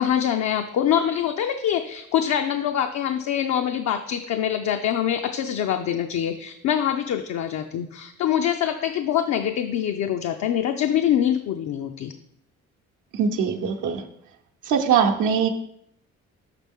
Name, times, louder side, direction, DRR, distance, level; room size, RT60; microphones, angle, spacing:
voice 1, 0.0-12.1, left 10 dB, 65° left, 5 dB, 0.5 m, -24 dB
voice 2, 13.1-14.0 14.7-15.5, right 7 dB, 80° right, 3 dB, 0.8 m, -21 dB
5.9 x 5.9 x 3.6 m, 0.75 s
cardioid pair, 90°, 30 cm